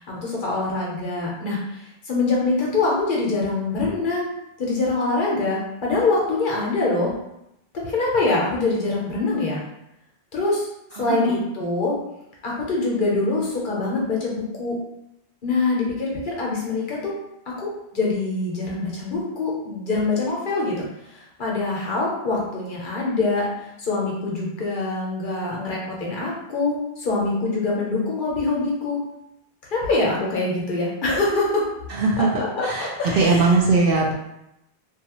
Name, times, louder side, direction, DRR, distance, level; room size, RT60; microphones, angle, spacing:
voice 1, 0.0-4.3 4.6-7.1 7.8-9.6 10.3-10.7 11.0-12.0 12.4-14.7 15.4-17.1 17.6-20.9 21.1-23.4 23.8-29.0 29.7-31.6 32.2-33.6, left 3 dB, 55° left, -4 dB, 0.9 m, -24 dB
voice 2, 11.0-11.4 31.9-32.3 32.6-34.1, right 3 dB, 65° right, -1 dB, 0.7 m, -20 dB
2.7 x 2.3 x 2.9 m, 0.85 s
omnidirectional pair, 1.0 m